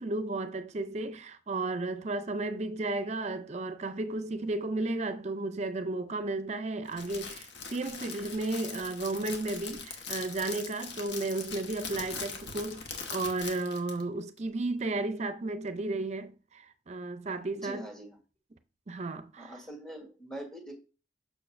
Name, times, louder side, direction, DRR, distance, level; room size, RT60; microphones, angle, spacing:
voice 1, 0.0-17.9 18.9-19.6, right 2 dB, 35° right, 0.5 m, -33 dB
Crackle, 6.9-14.0, left 5 dB, 65° left, 1.1 m, -41 dB
voice 2, 17.6-18.2 19.4-20.7, right 1 dB, 5° left, 1.4 m, -43 dB
6.7 x 6.4 x 2.6 m
head